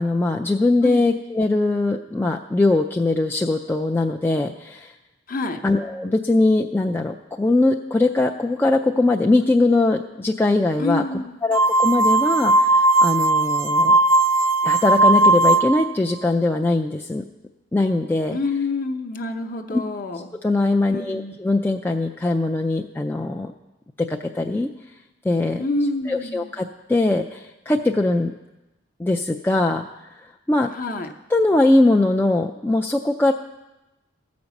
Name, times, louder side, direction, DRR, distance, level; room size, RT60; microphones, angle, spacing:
voice 1, 0.0-4.9 5.6-14.0 14.6-17.2 17.7-18.4 19.7-19.8 20.4-23.5 24.0-24.7 25.2-25.6 26.1-28.3 29.0-30.7 31.3-33.3, left 2 dB, 10° left, 1 dB, 0.3 m, -21 dB
voice 2, 5.3-5.6 10.8-11.4 18.3-20.3 20.9-21.3 25.6-26.5 30.7-31.1, left 2 dB, 40° left, 4 dB, 0.8 m, -27 dB
sound 1, 11.5-15.9, right 2 dB, 90° right, 0.6 m, -17 dB
14.5 x 5.2 x 7.0 m, 1.0 s
head